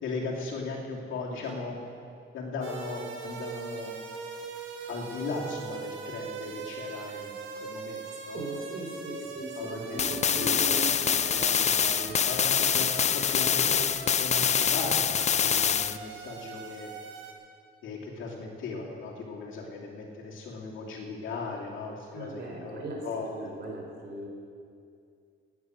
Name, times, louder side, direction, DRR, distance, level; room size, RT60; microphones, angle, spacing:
voice 1, 0.0-1.8 2.3-4.0 4.9-8.4 9.2-9.3 9.6-10.7 12.1-16.9 17.8-23.5, left 3 dB, 80° left, -2 dB, 2.8 m, -37 dB
sound 1, 2.6-17.3, right 5 dB, 75° right, 1.7 m, -41 dB
voice 2, 8.3-10.9 11.2-12.2 22.1-24.3, right 2 dB, 55° right, 0 dB, 4.3 m, -38 dB
sound 2, 10.0-16.0, left 7 dB, 35° left, 0.4 m, -25 dB
18.5 x 9.3 x 6.5 m, 2.4 s
cardioid pair, 90°, 20 cm